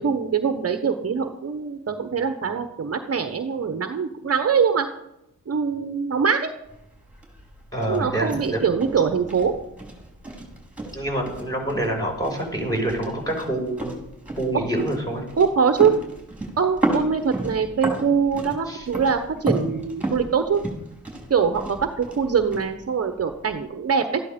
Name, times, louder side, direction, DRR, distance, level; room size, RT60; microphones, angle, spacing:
voice 1, 0.0-4.9 5.5-6.5 7.9-9.5 14.5-14.6 15.4-15.9 16.6-20.6 21.3-24.2, right 6 dB, 45° right, 7 dB, 1.1 m, -23 dB
sound 1, 6.6-23.6, right 1 dB, 5° right, 4.7 m, -33 dB
voice 2, 7.7-8.6 10.9-13.9 14.4-15.2 18.7-18.9, right 1 dB, 10° left, 0 dB, 5.5 m, -26 dB
13.5 x 11.0 x 5.2 m, 0.85 s
cardioid pair, 85°, 34 cm